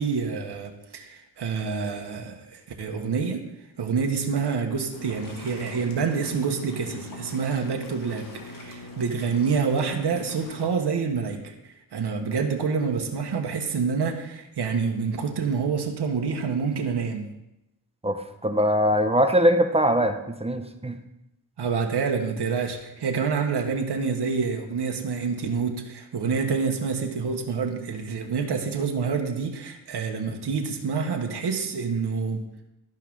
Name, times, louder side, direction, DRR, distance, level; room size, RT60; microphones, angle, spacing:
voice 1, 0.0-3.4 3.8-8.2 8.5-17.2 21.6-32.4, right 5 dB, 75° right, 3 dB, 1.4 m, -27 dB
sound 1, 4.9-10.6, left 2 dB, 55° left, 1.8 m, -41 dB
voice 2, 18.0-21.0, equal, 15° right, 7 dB, 0.9 m, -22 dB
12.0 x 5.5 x 5.5 m, 0.90 s
wide cardioid pair, 95°, 40 cm